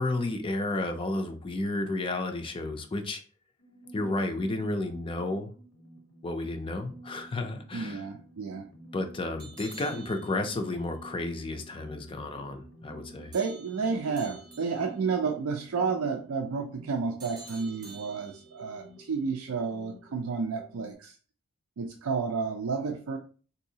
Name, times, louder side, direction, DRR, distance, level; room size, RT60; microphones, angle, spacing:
voice 1, 0.0-3.2 3.9-5.5 6.2-8.0 8.9-13.3, left 2 dB, 25° left, 6 dB, 0.4 m, -32 dB
sound 1, 3.6-20.9, right 1 dB, 70° left, 0.7 m, -51 dB
voice 2, 7.7-8.7 13.3-21.2 21.8-23.2, right 5 dB, 85° right, 3 dB, 0.4 m, -31 dB
sound 2, 9.4-10.7 13.3-15.1 17.2-18.7, right 3 dB, 20° right, 0.7 m, -49 dB
3.9 x 2.7 x 2.7 m, 0.39 s
head